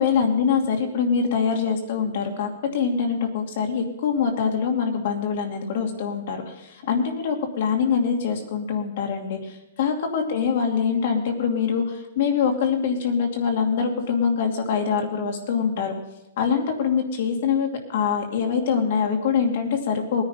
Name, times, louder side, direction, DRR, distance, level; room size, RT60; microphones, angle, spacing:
voice 1, 0.0-15.9 16.4-20.2, left 6 dB, 50° left, 3 dB, 2.5 m, -24 dB
19.5 x 10.0 x 5.8 m, 0.97 s
hypercardioid pair, 170°, 0 cm